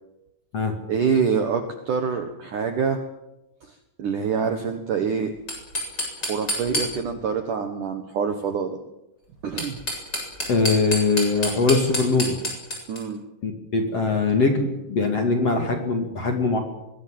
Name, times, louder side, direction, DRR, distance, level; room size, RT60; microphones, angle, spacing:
voice 1, 0.9-3.0 4.0-5.3 6.3-8.8 9.4-9.8 12.9-13.2, right 6 dB, 65° right, 6 dB, 2.1 m, -25 dB
sound 1, 5.4-7.3 9.4-13.0, left 1 dB, 20° left, 7.9 m, -29 dB
voice 2, 10.5-12.4 13.4-16.6, left 3 dB, 40° left, 4 dB, 2.6 m, -22 dB
24.0 x 21.0 x 7.7 m, 0.92 s
omnidirectional pair, 5.7 m